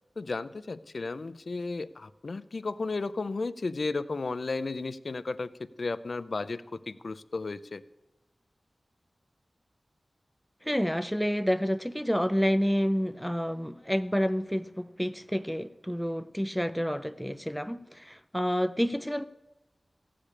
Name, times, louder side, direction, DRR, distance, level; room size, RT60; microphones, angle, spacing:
voice 1, 0.2-5.5 5.8-7.8, left 3 dB, 65° left, 15 dB, 0.5 m, -34 dB
voice 2, 10.6-19.2, equal, 5° left, 11 dB, 0.5 m, -29 dB
14.5 x 5.0 x 8.6 m, 1.0 s
cardioid pair, 40°, 0 cm